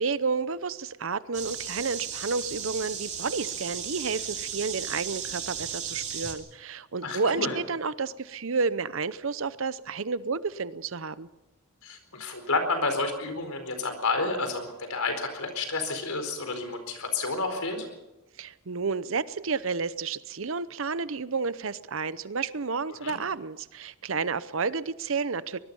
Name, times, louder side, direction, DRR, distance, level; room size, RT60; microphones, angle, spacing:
voice 1, 0.0-11.3 18.4-25.6, right 4 dB, 65° right, 16 dB, 0.8 m, -31 dB
sound 1, 1.3-6.3, right 7 dB, 35° right, 2.8 m, -35 dB
voice 2, 7.0-7.6 11.8-17.9 23.0-23.2, left 3 dB, 85° left, 6 dB, 4.4 m, -30 dB
24.0 x 20.0 x 5.5 m, 1.0 s
head